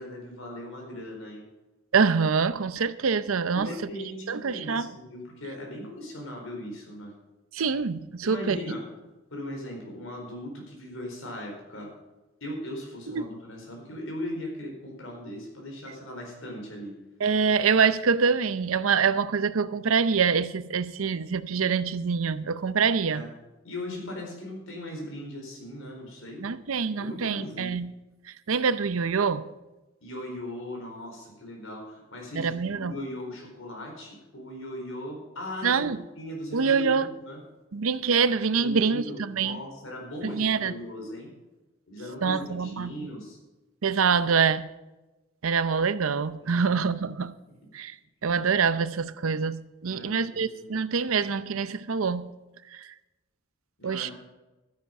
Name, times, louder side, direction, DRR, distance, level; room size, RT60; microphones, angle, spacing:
voice 1, 0.0-1.4 3.5-7.1 8.2-8.8 9.3-11.9 12.4-16.9 23.1-23.3 23.6-26.4 27.0-27.8 30.0-35.9 36.2-37.4 38.5-41.3 41.9-43.4 46.4-46.7 49.8-50.7 53.8-54.1, left 1 dB, 75° left, 4.5 m, -38 dB
voice 2, 1.9-3.7 4.3-4.9 7.5-8.6 13.1-13.2 17.2-23.2 26.4-27.9 28.5-29.4 32.3-33.0 35.6-36.0 36.5-37.1 37.7-39.6 40.2-40.7 42.2-42.9 43.8-44.7 45.4-47.3 47.7-47.9 48.2-52.3 52.7-52.9 53.8-54.1, right 5 dB, 85° right, 0.6 m, -25 dB
13.0 x 10.5 x 5.3 m
head